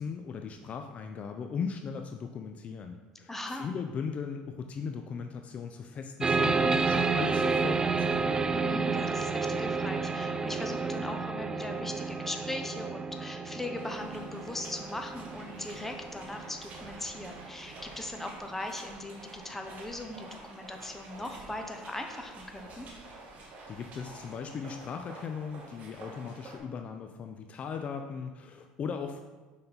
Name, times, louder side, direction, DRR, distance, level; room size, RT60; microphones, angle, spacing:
voice 1, 0.0-8.5 23.7-29.2, left 6 dB, 40° left, 5 dB, 0.5 m, -38 dB
voice 2, 3.3-3.7 8.5-22.9, left 2 dB, 10° left, 4 dB, 0.9 m, -39 dB
sound 1, 6.2-17.4, right 4 dB, 20° right, 0.3 m, -31 dB
sound 2, 13.8-26.6, right 2 dB, 50° right, 1.6 m, -49 dB
6.8 x 5.2 x 4.1 m, 1.3 s
supercardioid pair, 100°, 3 cm